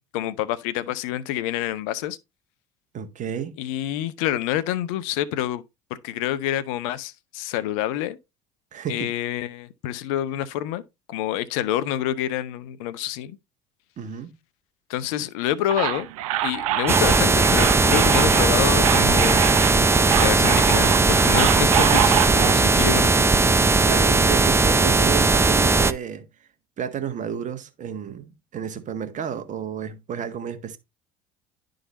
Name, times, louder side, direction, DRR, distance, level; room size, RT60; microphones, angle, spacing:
voice 1, 0.1-2.2 3.6-5.6 5.9-8.2 8.9-10.8 11.1-13.4 14.9-16.1 16.4-19.5 20.2-23.3, left 12 dB, 75° left, 0.7 m, -27 dB
voice 2, 2.9-3.5 8.7-9.1 14.0-14.3 23.8-26.3 26.8-30.8, right 8 dB, 45° right, 1.4 m, -31 dB
sound 1, 15.7-22.5, right 13 dB, 80° right, 0.7 m, -25 dB
sound 2, 16.9-25.9, right 3 dB, 15° right, 0.7 m, -18 dB
11.0 x 3.9 x 3.9 m
hypercardioid pair, 70°, 17 cm